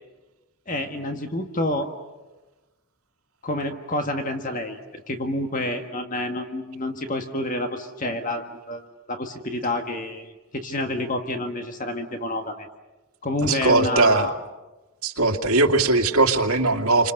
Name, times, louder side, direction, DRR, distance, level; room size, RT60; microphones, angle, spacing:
voice 1, 0.7-1.9 3.4-12.7 13.2-14.3, left 1 dB, 35° left, 5 dB, 1.6 m, -28 dB
voice 2, 13.4-14.3 15.0-17.1, right 2 dB, 75° right, 3 dB, 2.3 m, -20 dB
29.5 x 26.5 x 6.6 m, 1.1 s
head